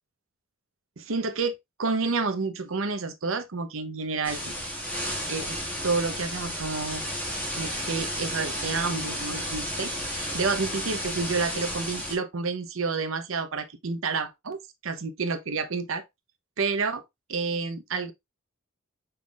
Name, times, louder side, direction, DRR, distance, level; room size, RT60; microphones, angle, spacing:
voice 1, 1.0-1.5 1.8-4.4 5.3-5.6 5.8-7.0 7.6-16.0 16.6-17.0 17.3-18.1, right 4 dB, 70° right, 0.8 m, -29 dB
sound 1, 4.2-12.2, equal, 10° left, 1.6 m, -32 dB
5.6 x 3.8 x 2.4 m
head